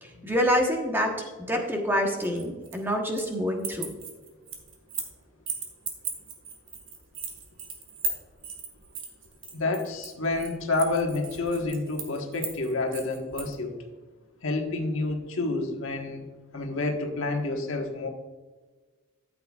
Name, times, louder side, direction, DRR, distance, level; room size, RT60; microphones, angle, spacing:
voice 1, 0.0-3.9, equal, 10° right, 1 dB, 1.2 m, -27 dB
sound 1, 2.2-3.3 3.6-5.2 5.5-13.5, right 5 dB, 70° right, 1.9 m, -36 dB
voice 2, 9.5-13.7 14.4-16.2 16.5-18.1, left 2 dB, 75° left, 2 dB, 1.4 m, -29 dB
13.0 x 7.8 x 2.4 m, 1.3 s
head